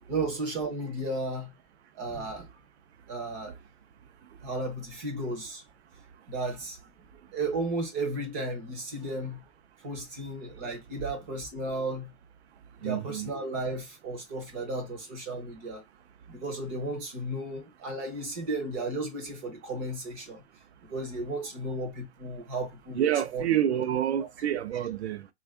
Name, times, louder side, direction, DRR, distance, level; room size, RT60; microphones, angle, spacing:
voice 1, 0.1-1.5 1.9-2.5 3.1-3.6 4.4-5.6 6.3-6.9 7.2-9.4 9.8-12.1 12.8-15.8 16.3-20.4 20.8-23.4, right 2 dB, 15° right, 0.5 m, -34 dB
voice 2, 12.8-13.3 23.0-25.3, right 10 dB, 75° right, 0.6 m, -28 dB
3.4 x 2.4 x 3.4 m
hypercardioid pair, 170°, 33 cm